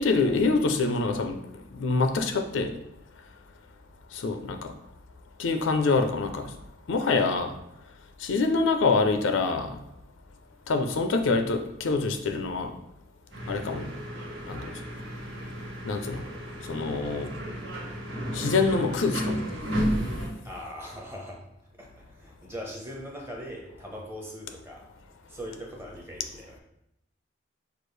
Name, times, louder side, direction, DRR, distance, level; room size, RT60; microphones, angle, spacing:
voice 1, 0.0-1.4 1.7-2.8 4.1-4.7 5.4-6.5 6.9-7.5 8.2-9.8 10.7-12.7 13.5-13.9 14.5-14.7 15.8-16.2 16.6-17.3 18.3-19.4, left 3 dB, 80° left, 6 dB, 0.5 m, -25 dB
sound 1, 13.3-20.3, equal, 70° right, 1.5 m, -33 dB
voice 2, 20.4-21.4 21.8-24.9 25.3-26.6, equal, 10° right, -1 dB, 0.9 m, -41 dB
6.2 x 2.4 x 3.2 m, 0.80 s
head